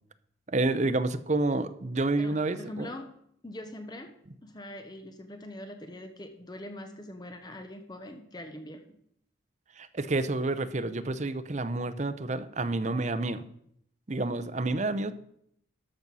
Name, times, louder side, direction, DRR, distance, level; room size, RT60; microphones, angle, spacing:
voice 1, 0.5-2.9 9.8-13.4 14.1-15.1, right 2 dB, 35° right, 13 dB, 0.7 m, -29 dB
voice 2, 2.2-3.1 3.4-4.1 4.4-8.8, left 1 dB, 20° left, 6 dB, 0.9 m, -43 dB
13.0 x 5.4 x 6.2 m, 0.71 s
head